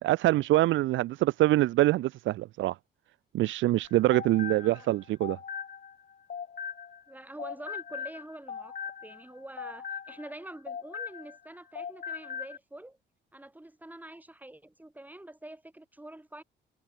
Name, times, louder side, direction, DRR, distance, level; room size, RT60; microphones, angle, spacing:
voice 1, 0.0-2.8 3.3-5.4, right 16 dB, 75° right, 0.4 m, -25 dB
sound 1, 3.8-7.1 7.4-11.5 11.7-12.6, left 7 dB, 45° left, 2.5 m, -40 dB
voice 2, 7.1-13.0 13.3-16.4, right 1 dB, 10° right, 3.9 m, -46 dB
cardioid pair, 90°, 20 cm